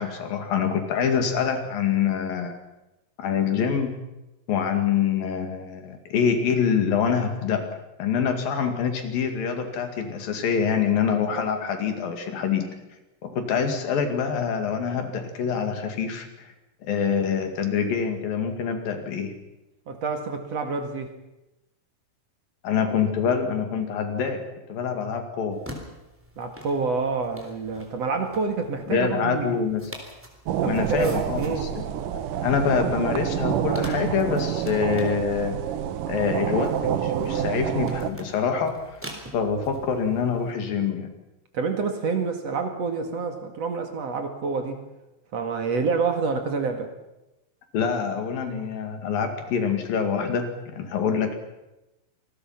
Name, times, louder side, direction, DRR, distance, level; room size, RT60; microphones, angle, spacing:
voice 1, 0.0-2.5 3.2-3.9 4.5-7.7 8.0-12.7 13.2-16.3 16.8-19.3 22.6-25.6 28.9-29.8 30.7-31.8 32.4-35.6 36.1-38.8 39.3-41.1 47.7-51.3, left 6 dB, 80° left, 6 dB, 4.1 m, -25 dB
voice 2, 19.9-21.2 26.4-29.6 30.6-31.7 41.5-44.8 45.3-46.9, right 4 dB, 50° right, 5 dB, 2.9 m, -28 dB
sound 1, 25.5-40.5, equal, 5° right, 3.4 m, -45 dB
sound 2, 30.5-38.1, right 10 dB, 70° right, 2.7 m, -28 dB
27.0 x 20.0 x 5.9 m, 0.96 s
omnidirectional pair, 4.0 m